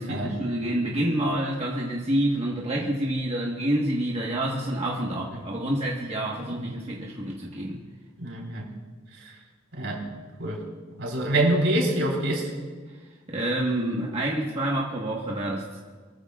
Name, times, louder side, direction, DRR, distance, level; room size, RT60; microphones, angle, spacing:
voice 1, 0.0-7.8 13.3-15.8, right 1 dB, 30° right, -3 dB, 1.4 m, -28 dB
voice 2, 8.2-8.7 9.2-9.3 9.7-10.0 10.4-10.6 11.0-12.5, right 1 dB, 65° right, -1 dB, 4.0 m, -25 dB
23.5 x 14.5 x 2.4 m, 1.5 s
head